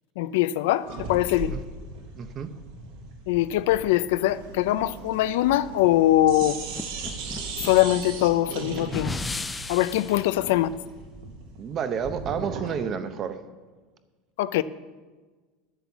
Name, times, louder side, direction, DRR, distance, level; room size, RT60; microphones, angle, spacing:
voice 1, 0.2-1.5 3.3-6.6 7.6-9.1 9.7-10.7 14.4-14.6, left 14 dB, 75° left, 15 dB, 0.5 m, -22 dB
sound 1, 0.8-6.0 6.2-12.8, right 4 dB, 70° right, 3.0 m, -38 dB
voice 2, 2.1-2.5 11.6-13.4, right 7 dB, 30° right, 10 dB, 0.8 m, -30 dB
Idling, 4.1-10.2, right 6 dB, 90° right, 1.4 m, -44 dB
sound 2, 6.4-10.3, left 3 dB, 10° left, 0.3 m, -36 dB
11.5 x 8.0 x 7.1 m, 1.3 s
supercardioid pair, 170°, 0 cm